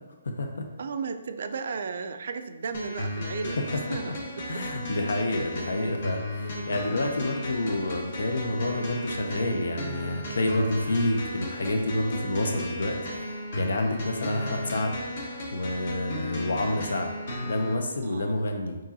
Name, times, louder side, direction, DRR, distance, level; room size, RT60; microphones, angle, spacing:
voice 1, 0.2-0.7 4.5-14.9 15.5-17.1 17.4-18.8, left 1 dB, 80° left, 4 dB, 0.5 m, -29 dB
voice 2, 0.8-4.6 5.8-5.9 6.3-6.7 14.3-14.6 18.0-18.4, right 5 dB, 60° right, 8 dB, 0.3 m, -36 dB
sound 1, 2.7-17.7, left 1 dB, 55° left, 0.8 m, -35 dB
4.6 x 3.0 x 2.7 m, 1.1 s
hypercardioid pair, 155°, 0 cm